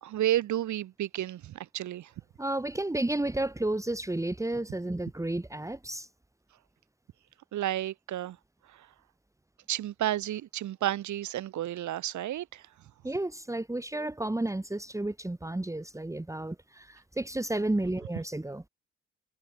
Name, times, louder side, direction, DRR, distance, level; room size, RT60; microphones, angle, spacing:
voice 1, 0.0-2.1 7.5-8.4 8.7-8.9 9.7-12.6, right 13 dB, 70° right, 1.8 m, -31 dB
voice 2, 2.4-6.1 13.0-18.6, right 2 dB, 10° right, 2.1 m, -32 dB
cardioid pair, 90°, 30 cm